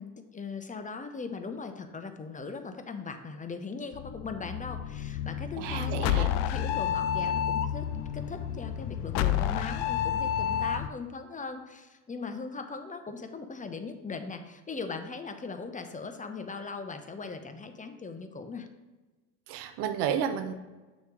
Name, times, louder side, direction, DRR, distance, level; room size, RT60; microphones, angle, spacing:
voice 1, 0.0-7.9 8.1-18.7, left 4 dB, 20° left, 7 dB, 0.7 m, -39 dB
sound 1, 3.9-10.9, left 10 dB, 65° left, 0.5 m, -30 dB
voice 2, 5.6-6.3 19.5-20.5, right 8 dB, 65° right, 9 dB, 0.7 m, -31 dB
6.3 x 3.1 x 5.2 m, 1.2 s
hypercardioid pair, 65°, 43 cm